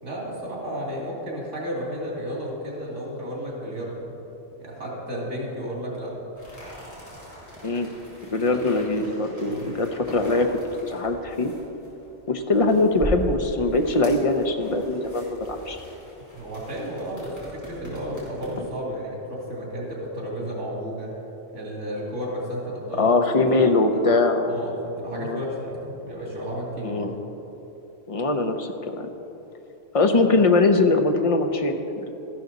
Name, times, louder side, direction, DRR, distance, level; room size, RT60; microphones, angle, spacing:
voice 1, 0.0-4.1 4.6-6.1 8.4-8.6 9.4-9.7 16.3-21.1 21.5-23.1 23.6-24.0 24.5-27.1, equal, 85° right, -3 dB, 3.0 m, -33 dB
sound 1, 6.4-18.8, equal, 15° left, 3.2 m, -40 dB
voice 2, 8.3-10.6 10.9-11.5 12.3-15.8 18.6-18.7 23.0-24.6 25.1-25.4 26.8-27.1 28.1-29.1 29.9-32.1, left 3 dB, 35° left, 5 dB, 0.7 m, -22 dB
13.5 x 11.0 x 4.0 m, 3.0 s
omnidirectional pair, 1.2 m